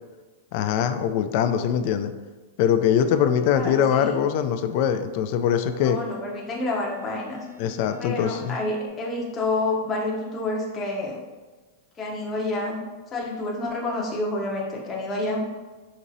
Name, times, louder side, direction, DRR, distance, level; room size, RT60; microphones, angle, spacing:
voice 1, 0.5-2.1 2.6-6.0 7.6-8.6, left 8 dB, 55° left, 8 dB, 0.3 m, -22 dB
voice 2, 3.5-4.2 5.8-7.5 8.0-11.2 12.0-15.5, left 2 dB, 25° left, -2 dB, 0.7 m, -29 dB
sound 1, 4.5-8.9, left 4 dB, 80° right, 0.4 m, -47 dB
5.1 x 2.9 x 2.7 m, 1.3 s
hypercardioid pair, 110°, 0 cm